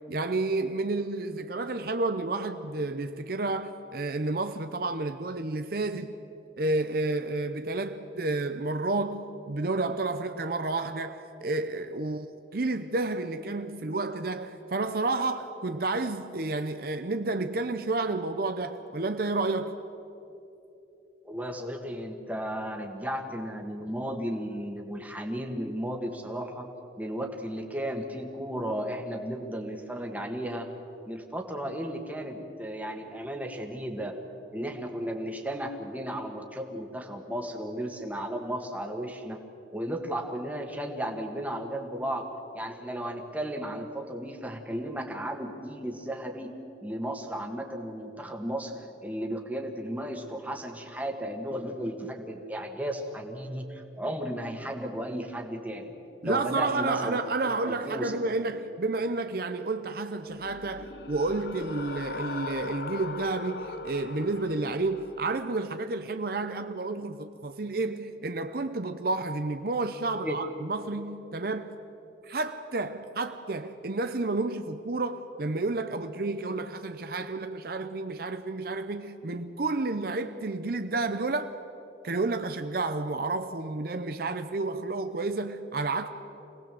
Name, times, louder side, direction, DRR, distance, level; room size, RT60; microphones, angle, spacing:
voice 1, 0.1-6.1 6.6-12.3 12.5-19.8 56.2-71.7 72.2-81.5 82.0-86.1, right 3 dB, 55° right, 0.7 m, -30 dB
voice 2, 21.2-26.7 27.0-30.7 31.1-34.2 34.5-39.4 39.7-42.3 42.5-46.5 46.8-55.9 56.2-58.1 70.1-70.4, equal, 10° right, 1.8 m, -34 dB
sound 1, 60.3-65.4, left 4 dB, 65° left, 0.9 m, -40 dB
25.5 x 18.5 x 7.7 m
head